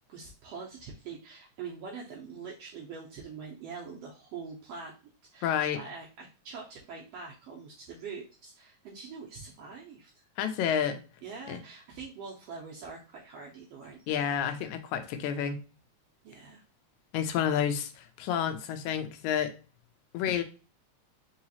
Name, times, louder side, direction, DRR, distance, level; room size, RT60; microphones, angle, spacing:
voice 1, 0.1-4.9 5.3-10.2 11.2-14.2 16.2-16.6, right 5 dB, 75° right, 1.5 m, -44 dB
voice 2, 5.4-5.8 10.4-11.0 11.5-11.6 14.1-15.6 17.1-19.5 20.1-20.4, left 9 dB, 80° left, 2.0 m, -29 dB
4.7 x 2.9 x 2.8 m
omnidirectional pair, 3.4 m